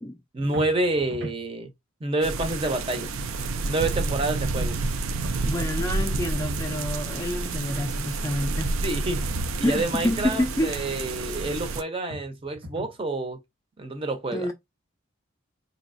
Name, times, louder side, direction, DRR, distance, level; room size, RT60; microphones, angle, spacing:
voice 1, 0.3-1.7 2.0-3.1 3.7-4.8 8.8-9.2 9.6-13.4 13.8-14.5, right 2 dB, 25° right, 0.6 m, -28 dB
sound 1, 0.5-1.5 4.6-5.5 8.6-9.5 12.1-13.0, right 1 dB, 60° right, 1.0 m, -40 dB
sound 2, 2.2-11.8, right 3 dB, 85° right, 0.5 m, -29 dB
voice 2, 5.4-8.7 9.6-10.9 14.3-14.5, left 1 dB, 15° left, 0.3 m, -28 dB
4.0 x 2.9 x 2.5 m
head